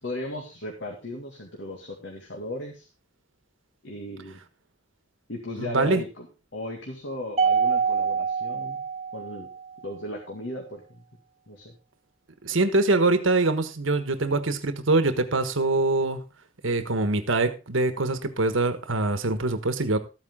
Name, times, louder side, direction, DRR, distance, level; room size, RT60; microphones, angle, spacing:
voice 1, 0.0-2.9 3.8-4.4 5.3-6.3 6.5-8.8 9.1-9.5 9.8-11.0 11.5-11.7, left 1 dB, 65° left, 2.1 m, -36 dB
voice 2, 5.6-6.0 12.4-16.2 16.6-20.0, right 2 dB, 80° right, 1.3 m, -24 dB
Mallet percussion, 7.4-9.8, right 6 dB, 30° right, 1.0 m, -25 dB
13.5 x 8.9 x 3.6 m
head